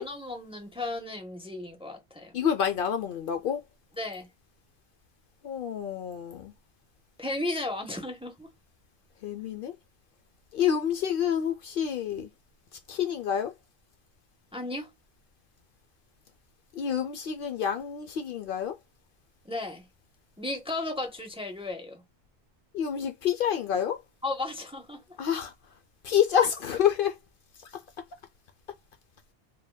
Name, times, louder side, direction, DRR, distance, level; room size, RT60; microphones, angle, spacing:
voice 1, 0.0-2.3 4.0-4.3 7.2-8.5 14.5-14.9 19.4-19.9 20.4-22.0 24.2-25.0, left 2 dB, 5° right, 0.6 m, -34 dB
voice 2, 2.3-3.6 5.4-6.5 9.2-9.7 10.5-12.3 12.9-13.5 16.7-18.8 22.7-24.0 25.2-25.5 26.0-27.2 27.7-27.8, left 8 dB, 65° left, 0.7 m, -28 dB
3.5 x 2.2 x 2.2 m
omnidirectional pair, 1.0 m